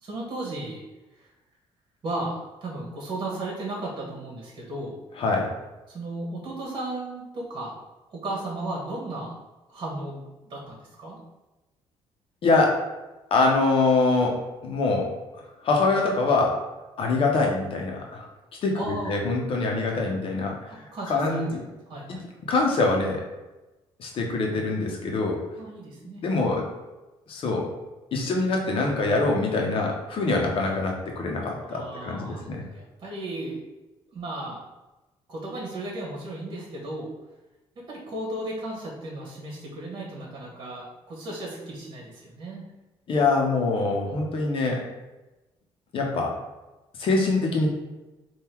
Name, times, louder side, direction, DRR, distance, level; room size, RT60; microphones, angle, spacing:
voice 1, 0.0-0.8 1.1-1.3 2.0-4.9 5.9-7.8 8.1-9.3 9.7-11.2 18.7-19.2 20.9-21.4 21.9-22.2 25.6-26.5 31.6-33.6 34.1-34.6 35.3-37.1 37.7-42.6, right 2 dB, 45° right, -4 dB, 1.4 m, -35 dB
voice 2, 5.2-5.5 12.4-12.8 13.3-15.1 15.6-16.6 17.0-18.3 18.6-18.8 19.1-21.6 22.5-23.2 24.0-25.4 26.2-26.6 27.3-27.7 28.1-32.6 43.1-44.8 45.9-46.3 47.0-47.7, left 3 dB, 60° left, 0 dB, 1.1 m, -24 dB
3.7 x 2.7 x 4.5 m, 1.1 s
cardioid pair, 95°, 11 cm